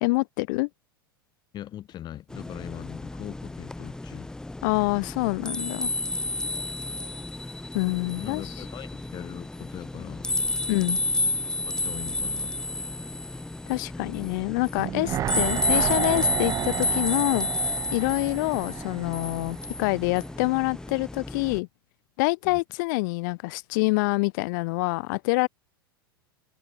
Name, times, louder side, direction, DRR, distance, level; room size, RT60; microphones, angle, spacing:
voice 1, 0.0-0.7 4.6-5.9 7.7-8.4 10.7-11.0 13.7-17.5 17.9-21.7 22.2-25.5, left 26 dB, 55° left, 0.7 m, -26 dB
voice 2, 1.5-4.3 8.2-10.2 11.7-12.5 12.8-12.9 18.2-18.3 22.4-22.6, left 12 dB, 35° left, 1.5 m, -40 dB
sound 1, 2.3-21.6, left 2 dB, 5° left, 0.8 m, -31 dB
sound 2, 14.8-19.9 20.2-20.3, right 11 dB, 25° right, 0.4 m, -32 dB
hypercardioid pair, 90°, 12 cm